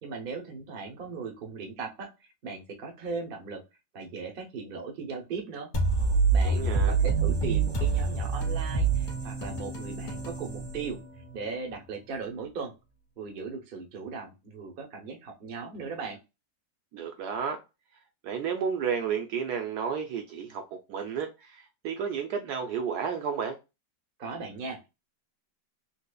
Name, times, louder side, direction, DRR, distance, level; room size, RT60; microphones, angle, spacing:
voice 1, 0.0-3.6 3.9-5.7 6.3-11.0 11.3-12.7 13.2-16.2 24.2-24.9, right 4 dB, 45° right, 0.7 m, -38 dB
sound 1, 5.7-11.4, right 4 dB, 45° left, 0.6 m, -27 dB
voice 2, 6.4-6.9 16.9-17.6 18.2-20.6 20.9-23.6, right 6 dB, 70° right, 1.0 m, -32 dB
4.0 x 2.8 x 2.3 m
omnidirectional pair, 2.0 m